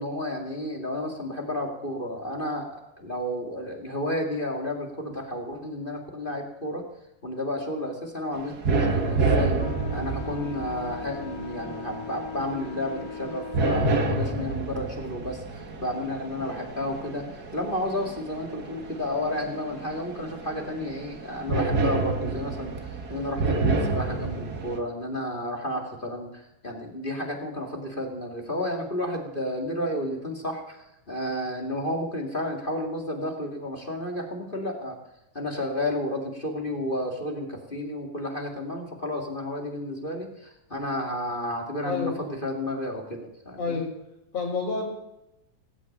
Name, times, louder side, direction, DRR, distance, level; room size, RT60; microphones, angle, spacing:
voice 1, 0.0-6.8 7.2-9.6 9.9-35.0 35.3-43.2 43.4-43.8, left 1 dB, 20° left, 1 dB, 1.8 m, -32 dB
sound 1, 8.3-24.8, right 3 dB, 55° right, 1.0 m, -29 dB
Wind instrument woodwind instrument, 9.6-14.5, left 8 dB, 80° left, 2.6 m, -40 dB
voice 2, 41.8-42.3 43.6-43.9 44.3-44.9, left 4 dB, 45° left, -3 dB, 4.9 m, -29 dB
18.5 x 8.3 x 8.7 m, 0.88 s
omnidirectional pair, 4.2 m